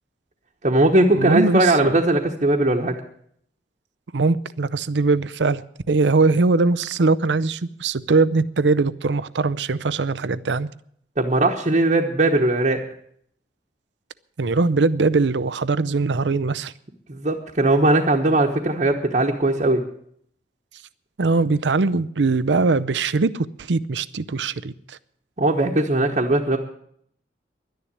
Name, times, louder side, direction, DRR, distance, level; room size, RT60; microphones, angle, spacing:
voice 1, 0.6-3.0 11.2-12.8 17.1-19.8 25.4-26.6, right 2 dB, 40° right, 1.2 m, -19 dB
voice 2, 1.1-2.0 4.1-10.7 14.4-16.7 21.2-25.0, right 3 dB, 90° right, 0.6 m, -21 dB
11.5 x 10.5 x 9.6 m
head